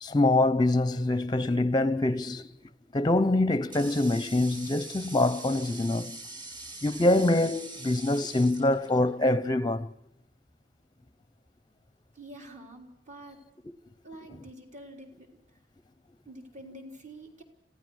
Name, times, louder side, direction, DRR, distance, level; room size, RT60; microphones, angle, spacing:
voice 1, 0.0-2.5 2.9-6.2 6.8-9.9, left 2 dB, 25° left, 0.7 m, -25 dB
Water tap faucet, 3.0-9.5, right 2 dB, 25° right, 2.7 m, -44 dB
voice 2, 12.1-13.4 14.0-15.4 16.3-17.4, right 1 dB, 40° right, 3.8 m, -47 dB
27.0 x 16.0 x 6.4 m
head